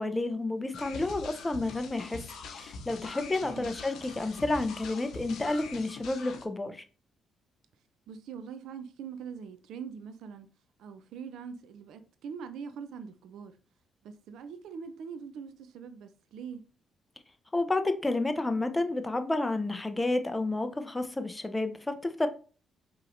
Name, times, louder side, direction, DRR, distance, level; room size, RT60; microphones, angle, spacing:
voice 1, 0.0-2.2 2.5-6.8 17.5-22.3, left 2 dB, 20° left, 0.6 m, -30 dB
sound 1, 0.7-6.5, left 4 dB, 75° left, 0.6 m, -43 dB
voice 2, 8.1-10.5 10.8-13.5 14.0-16.7, right 6 dB, 80° right, 0.5 m, -43 dB
4.8 x 3.0 x 2.5 m
supercardioid pair, 65°, 0 cm